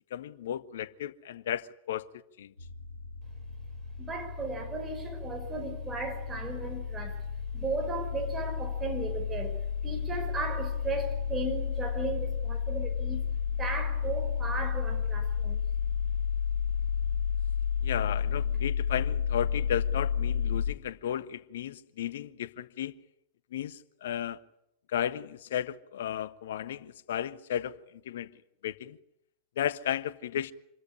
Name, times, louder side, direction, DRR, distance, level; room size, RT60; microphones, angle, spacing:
voice 1, 0.1-2.1 2.4-2.5 17.8-22.9 23.5-24.4 24.9-28.3 28.6-29.0 29.6-30.5, left 10 dB, 60° left, 0.8 m, -34 dB
sound 1, 2.6-20.7, left 7 dB, 85° left, 1.3 m, -32 dB
voice 2, 4.0-7.3 7.5-13.2 13.5-15.6 18.5-18.6, right 3 dB, 20° right, 5.1 m, -36 dB
26.0 x 13.5 x 10.0 m
figure-of-eight pair, 90°, 0 cm